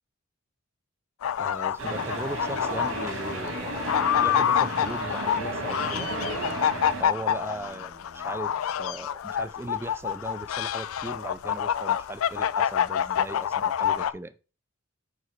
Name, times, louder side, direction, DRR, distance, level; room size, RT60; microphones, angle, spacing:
sound 1, 1.2-14.1, left 9 dB, 80° left, 0.4 m, -27 dB
voice 1, 1.4-3.9 4.2-6.1 7.0-8.5 8.8-14.3, right 2 dB, 10° right, 0.4 m, -38 dB
sound 2, 1.8-7.0, right 2 dB, 85° right, 2.1 m, -33 dB
sound 3, 2.2-9.6, right 3 dB, 60° right, 0.8 m, -48 dB
5.4 x 4.8 x 4.6 m
head